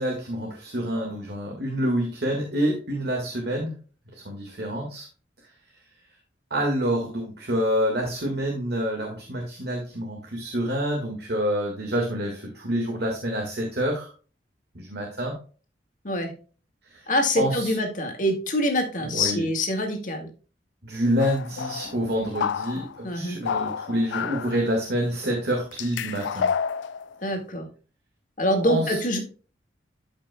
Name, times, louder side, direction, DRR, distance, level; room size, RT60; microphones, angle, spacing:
voice 1, 0.0-3.7 4.1-5.1 6.5-14.1 14.8-15.3 16.9-17.1 17.4-17.7 19.0-19.4 20.8-26.5 28.6-29.0, equal, 55° right, 1 dB, 1.7 m, -27 dB
voice 2, 17.1-20.3 23.0-23.4 27.2-27.7 28.4-29.2, left 1 dB, 45° left, 3 dB, 1.8 m, -25 dB
sound 1, 21.2-23.0 23.4-24.7 25.2-25.4 25.7-27.2, left 7 dB, 75° left, 0.4 m, -30 dB
12.5 x 5.4 x 2.2 m, 0.37 s
head